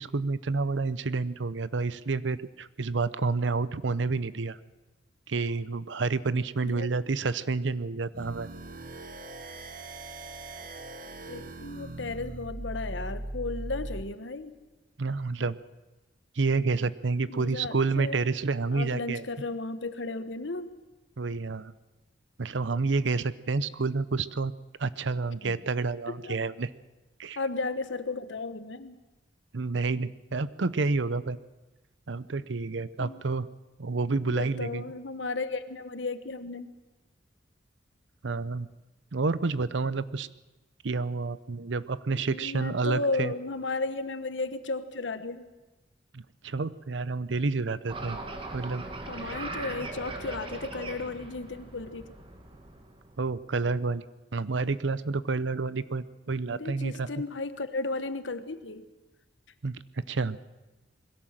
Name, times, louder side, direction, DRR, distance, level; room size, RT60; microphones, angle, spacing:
voice 1, 0.0-4.6 5.3-8.5 15.0-15.6 16.4-19.2 21.2-21.7 22.4-24.5 24.8-26.7 27.2-27.4 29.5-31.4 32.1-33.5 33.8-34.9 38.2-38.7 39.1-40.3 40.8-43.3 46.1-48.2 48.5-48.8 49.2-49.4 53.2-54.0 54.3-57.1 59.6-60.4, right 3 dB, 90° right, 17 dB, 0.7 m, -29 dB
sound 1, 8.1-14.1, right 1 dB, 50° right, 1.3 m, -39 dB
voice 2, 11.3-14.6 17.3-18.2 18.7-20.7 25.4-25.6 26.1-26.4 27.4-28.9 33.0-33.2 34.3-36.7 42.2-45.5 49.1-52.1 56.5-58.9, left 3 dB, 85° left, 11 dB, 1.2 m, -34 dB
sound 2, 47.9-53.3, right 2 dB, 30° right, 2.1 m, -40 dB
21.0 x 16.5 x 7.5 m, 1.1 s
head